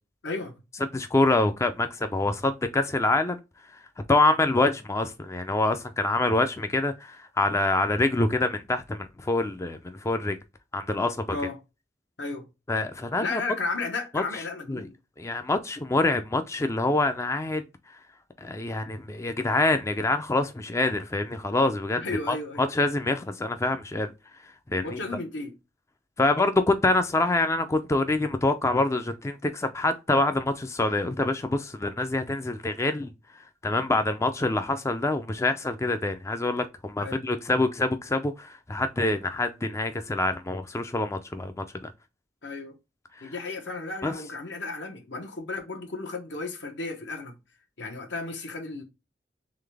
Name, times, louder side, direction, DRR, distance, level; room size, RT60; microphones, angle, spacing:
voice 1, 0.2-0.6 11.3-11.6 12.2-12.5 13.2-14.9 22.0-22.7 24.8-25.5 37.0-37.2 42.4-42.8 43.2-47.4 47.8-48.8, left 3 dB, 75° left, 1.1 m, -34 dB
voice 2, 0.9-3.4 4.1-10.4 10.7-11.3 12.7-13.4 14.1-14.2 14.7-14.8 15.2-17.6 18.4-22.0 22.3-24.1 24.7-25.0 26.2-33.1 33.6-41.6 43.2-43.3 44.0-44.1, left 2 dB, 15° left, 0.4 m, -26 dB
3.8 x 3.4 x 3.3 m
head